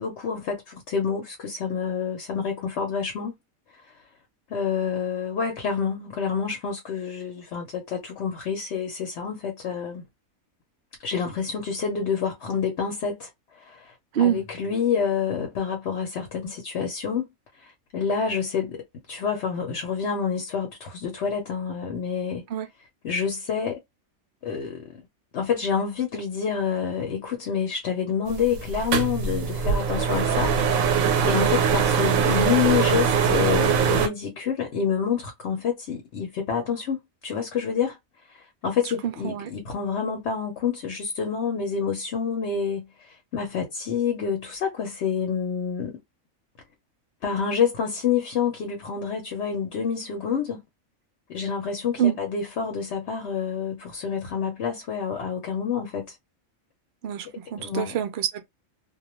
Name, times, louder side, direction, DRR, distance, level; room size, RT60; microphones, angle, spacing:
voice 1, 0.0-3.3 4.5-10.0 11.0-13.3 13.7-17.3 17.9-18.8 19.1-22.5 23.0-23.8 24.4-25.0 25.3-31.0 31.2-38.0 38.3-42.9 43.3-46.0 47.2-50.6 51.3-56.1 57.6-58.0, left 6 dB, 60° left, 0.9 m, -28 dB
voice 2, 14.1-14.4 22.5-22.7 39.0-39.5 52.0-52.2 57.0-58.4, right 10 dB, 60° right, 0.7 m, -25 dB
sound 1, 28.3-34.1, right 6 dB, 85° right, 1.0 m, -22 dB
2.3 x 2.2 x 2.9 m
omnidirectional pair, 1.4 m